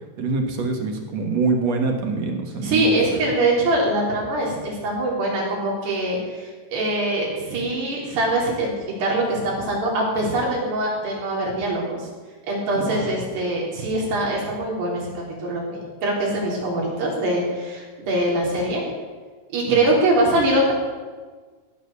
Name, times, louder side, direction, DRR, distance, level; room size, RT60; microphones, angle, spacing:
voice 1, 0.2-3.0 12.9-13.0 19.7-19.8, right 3 dB, 55° right, 3 dB, 2.1 m, -24 dB
voice 2, 2.6-8.7 9.0-12.0 12.5-15.1 15.4-18.8 19.5-20.7, right 1 dB, 75° right, -3 dB, 5.9 m, -23 dB
16.5 x 9.2 x 6.9 m, 1.4 s
omnidirectional pair, 4.8 m